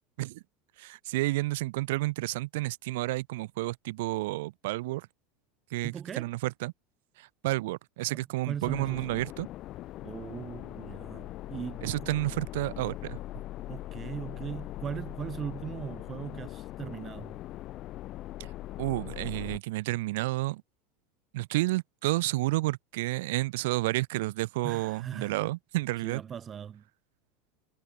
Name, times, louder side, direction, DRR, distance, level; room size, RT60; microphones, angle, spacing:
voice 1, 0.8-5.1 5.7-6.7 7.2-9.5 11.8-13.2 18.4-18.5 18.8-20.6 21.3-26.2, right 19 dB, 75° right, 0.5 m, -31 dB
voice 2, 5.8-6.3 8.1-9.1 10.0-12.1 13.7-17.4 24.6-25.3 26.0-26.8, right 8 dB, 20° right, 1.2 m, -39 dB
sound 1, 8.6-19.6, left 15 dB, 35° left, 2.4 m, -41 dB
supercardioid pair, 165°, 0 cm